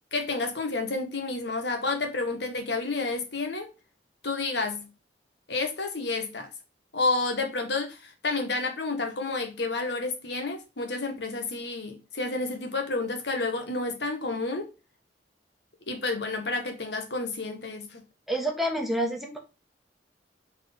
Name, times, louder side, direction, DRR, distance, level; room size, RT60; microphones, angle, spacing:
voice 1, 0.1-3.7 4.2-4.9 5.5-6.5 6.9-14.7 15.9-18.0, left 3 dB, 65° left, 1.4 m, -30 dB
voice 2, 18.3-19.4, equal, ahead, 1.2 m, -28 dB
4.8 x 3.9 x 5.3 m
head